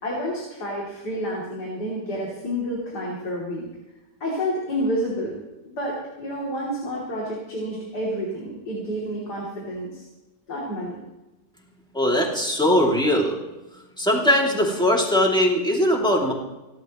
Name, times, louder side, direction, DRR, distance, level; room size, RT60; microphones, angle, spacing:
voice 1, 0.0-3.7 4.2-5.4 5.6-10.0 10.5-11.0, equal, 80° left, -4 dB, 3.7 m, -29 dB
voice 2, 11.9-13.4 14.0-16.3, left 1 dB, 5° left, -2 dB, 2.7 m, -20 dB
30.0 x 12.0 x 3.1 m, 1.0 s
omnidirectional pair, 1.7 m